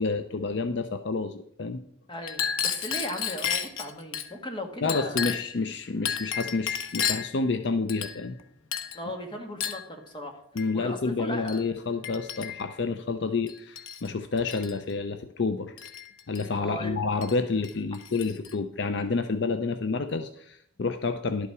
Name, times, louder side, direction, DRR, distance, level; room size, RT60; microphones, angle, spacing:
voice 1, 0.0-1.8 4.8-8.4 10.6-15.7 16.3-21.5, left 4 dB, 55° left, 9 dB, 0.5 m, -29 dB
voice 2, 2.1-5.4 8.9-10.4 10.7-11.8 16.6-16.9, equal, 25° left, 4 dB, 1.5 m, -37 dB
Chink clink, 2.2-4.3 4.9-5.6 6.1-7.4 7.9-8.4 8.7-9.0 9.6-9.9 10.6-10.7 11.5-11.6 12.0-12.7 13.5-14.1 14.4-14.7 15.8-16.5 17.2-17.4 17.6-18.5, left 8 dB, 90° left, 1.0 m, -32 dB
11.5 x 8.3 x 4.7 m, 0.71 s
head